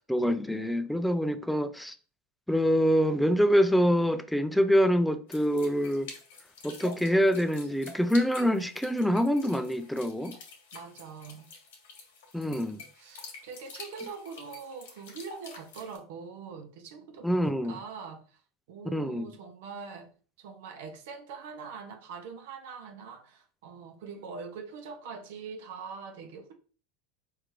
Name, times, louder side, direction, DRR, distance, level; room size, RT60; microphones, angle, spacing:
voice 1, 0.1-1.9 2.5-6.1 6.6-10.4 12.3-12.8 17.2-17.8 18.9-19.3, equal, ahead, 0.5 m, -25 dB
sound 1, 5.3-16.0, left 4 dB, 80° left, 1.7 m, -48 dB
voice 2, 10.7-11.5 13.0-18.4 18.7-20.1 20.4-26.5, right 5 dB, 75° right, 0.9 m, -43 dB
4.7 x 3.4 x 3.2 m
hypercardioid pair, 105°, 0 cm